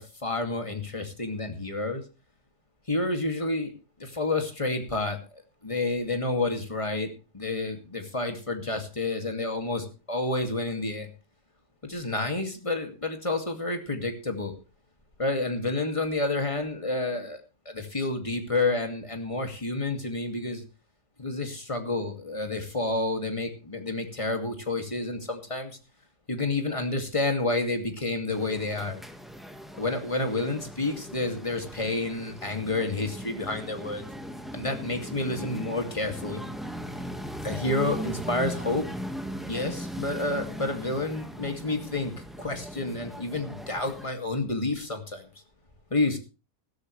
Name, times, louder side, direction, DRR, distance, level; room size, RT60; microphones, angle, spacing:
voice 1, 0.0-2.0 2.9-3.7 4.0-5.2 5.6-7.1 7.3-11.1 11.8-14.5 15.2-17.4 17.7-20.6 21.2-25.8 26.3-29.0 29.8-34.1 34.5-36.4 37.4-38.9 39.5-42.1 42.4-45.3 45.9-46.2, left 2 dB, 20° left, 5 dB, 2.5 m, -29 dB
sound 1, 28.3-44.1, equal, ahead, 1.6 m, -39 dB
15.5 x 13.5 x 3.3 m, 0.32 s
omnidirectional pair, 1.4 m